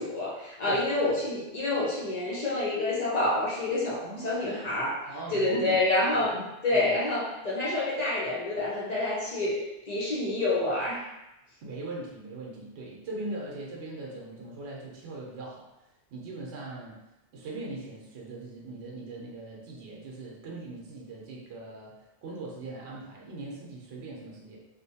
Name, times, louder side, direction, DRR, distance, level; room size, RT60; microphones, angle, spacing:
voice 1, 0.0-5.1 5.3-6.3 6.6-11.1, left 2 dB, 50° left, -6 dB, 0.5 m, -28 dB
voice 2, 0.7-1.2 4.0-4.5 5.1-5.8 6.1-6.9 11.6-15.7 16.1-17.0 17.3-24.6, right 2 dB, 70° right, -2 dB, 0.8 m, -40 dB
2.6 x 2.1 x 2.7 m, 0.94 s
omnidirectional pair, 1.2 m